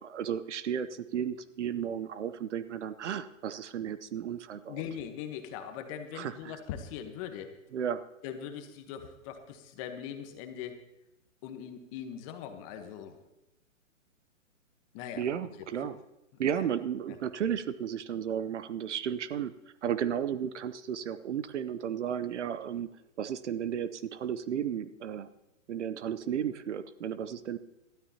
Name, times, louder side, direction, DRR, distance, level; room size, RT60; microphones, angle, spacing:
voice 1, 0.0-4.8 6.1-6.6 7.7-8.0 15.2-16.0 16.4-19.5 19.8-22.9 23.2-25.3 25.7-27.6, right 9 dB, 60° right, 14 dB, 0.8 m, -33 dB
voice 2, 4.7-7.5 8.2-10.8 11.4-13.2 14.9-15.2 15.8-15.9 16.5-16.7 17.1-17.2, left 9 dB, 25° left, 7 dB, 1.1 m, -41 dB
19.0 x 12.5 x 2.9 m, 0.91 s
hypercardioid pair, 145°, 39 cm